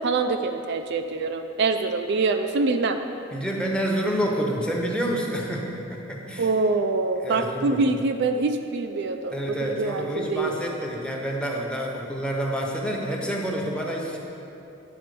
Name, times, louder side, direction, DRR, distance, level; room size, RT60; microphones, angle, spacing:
voice 1, 0.0-3.0 6.4-9.3 9.6-10.6, right 3 dB, 60° right, 6 dB, 0.4 m, -25 dB
voice 2, 3.3-6.5 7.2-7.8 9.3-14.2, equal, 5° left, -1 dB, 0.9 m, -28 dB
9.6 x 4.2 x 6.8 m, 2.8 s
head